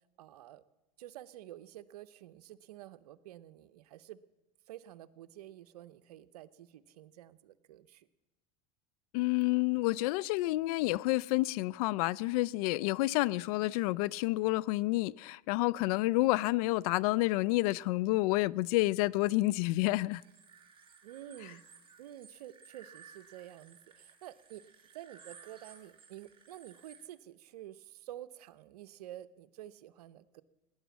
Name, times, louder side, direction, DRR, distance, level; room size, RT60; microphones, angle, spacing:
voice 1, 0.2-0.6 1.0-4.2 4.7-8.1 21.0-21.6 22.0-24.6 24.9-30.4, right 13 dB, 85° right, 0.8 m, -50 dB
voice 2, 9.1-20.2, left 20 dB, 70° left, 0.4 m, -29 dB
sound 1, 20.2-27.1, right 6 dB, 25° right, 2.9 m, -57 dB
18.5 x 10.5 x 7.2 m
supercardioid pair, 105°, 20 cm